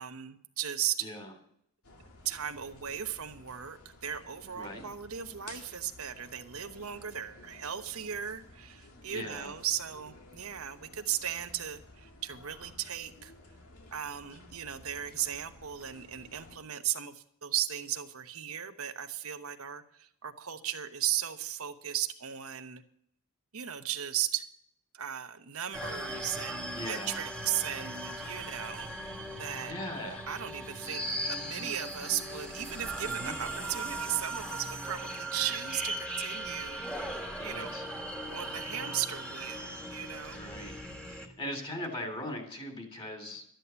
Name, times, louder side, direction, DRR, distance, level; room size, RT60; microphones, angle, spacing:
voice 1, 0.0-1.0 2.2-13.3 13.9-22.8 23.5-24.4 24.9-29.7 30.3-37.1 37.4-37.7 38.3-40.4, right 10 dB, 80° right, 7 dB, 1.0 m, -36 dB
voice 2, 1.0-1.3 4.5-4.9 9.1-9.5 26.7-27.2 29.7-30.2 33.0-33.4 37.4-37.8 40.3-40.8 41.0-43.4, left 1 dB, 25° left, 5 dB, 3.0 m, -40 dB
sound 1, 1.8-16.6, left 2 dB, 80° left, 2.2 m, -54 dB
sound 2, 25.7-41.3, right 1 dB, 5° left, 1.7 m, -38 dB
12.5 x 9.2 x 6.9 m, 0.70 s
head